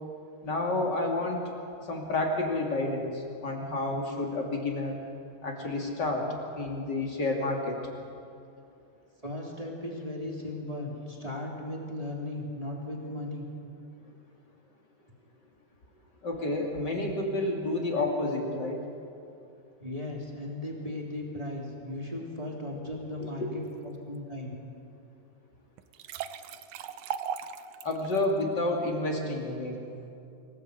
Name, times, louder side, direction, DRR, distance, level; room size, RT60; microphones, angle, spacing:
voice 1, 0.4-1.4 1.9-5.0 5.4-6.3 6.5-7.8 16.2-18.8 23.4-23.5 27.8-29.8, left 2 dB, 30° left, 0 dB, 2.8 m, -30 dB
voice 2, 9.2-13.5 19.8-24.5, left 1 dB, 10° right, -3 dB, 2.8 m, -37 dB
sound 1, 25.8-28.2, right 8 dB, 80° right, 1.7 m, -37 dB
25.0 x 17.5 x 8.3 m, 2.6 s
omnidirectional pair, 4.5 m